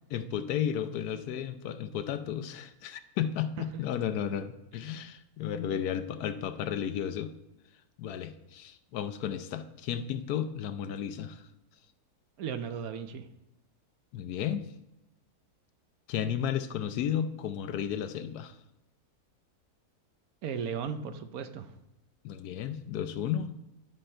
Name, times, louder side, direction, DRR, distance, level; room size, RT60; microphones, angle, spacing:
voice 1, 0.1-7.3 8.0-11.4 14.1-14.6 16.1-18.5 22.2-23.7, left 9 dB, 85° left, 9 dB, 1.2 m, -33 dB
voice 2, 12.4-13.3 20.4-21.7, right 7 dB, 70° right, 9 dB, 1.2 m, -36 dB
11.5 x 6.4 x 4.4 m, 0.91 s
omnidirectional pair, 1.6 m